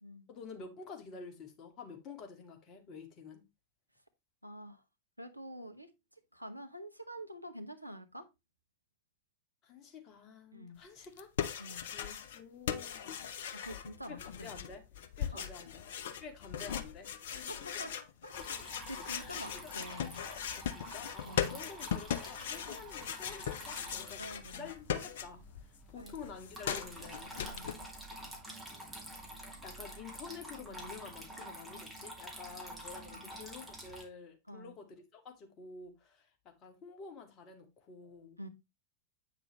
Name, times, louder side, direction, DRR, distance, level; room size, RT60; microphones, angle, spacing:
voice 1, 0.3-3.4 9.6-11.3 11.9-13.4 14.1-15.9 16.2-17.7 19.0-19.7 20.5-27.4 29.4-38.4, left 5 dB, 35° left, 2.0 m, -50 dB
voice 2, 4.4-4.8 5.2-5.9 6.3-8.3 10.5-10.8 11.6-11.9 13.5-14.6 15.3-15.4 17.3-17.9 18.2-18.4 18.9-20.2 21.2-21.6 24.2-24.7 25.9-26.1 27.5-27.8 33.1-33.3 34.5-34.7 38.4-38.5, equal, 90° right, 0.9 m, -47 dB
sound 1, 11.0-12.4 12.7-25.6 25.9-27.7, left 8 dB, 55° left, 0.7 m, -39 dB
Water tap faucet / Trickle dribble, 18.3-34.0, right 1 dB, ahead, 2.5 m, -48 dB
8.5 x 6.0 x 3.1 m
figure-of-eight pair, 90°, 0 cm